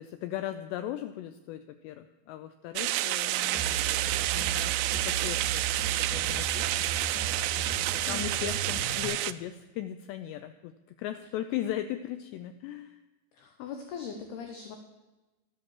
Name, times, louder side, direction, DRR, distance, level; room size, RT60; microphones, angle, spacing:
voice 1, 0.0-4.0 4.3-4.8 5.0-6.7 7.6-13.0, left 12 dB, 85° left, 10 dB, 2.4 m, -38 dB
sound 1, 2.8-9.3, right 15 dB, 85° right, 2.5 m, -29 dB
sound 2, 3.5-9.0, right 6 dB, 45° left, 4.2 m, -36 dB
voice 2, 8.1-8.5 13.3-14.8, left 6 dB, 70° left, 5 dB, 2.6 m, -40 dB
13.5 x 10.5 x 7.3 m, 1.1 s
omnidirectional pair, 5.6 m